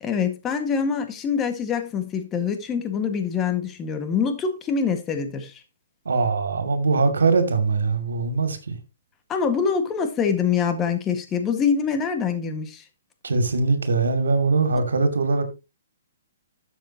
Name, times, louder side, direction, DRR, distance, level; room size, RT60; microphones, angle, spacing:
voice 1, 0.0-5.5 9.3-12.8, left 6 dB, 20° left, 1.8 m, -25 dB
voice 2, 6.0-8.8 13.2-15.4, right 4 dB, 90° right, 2.5 m, -22 dB
12.5 x 7.3 x 2.9 m
hypercardioid pair, 150°, 0 cm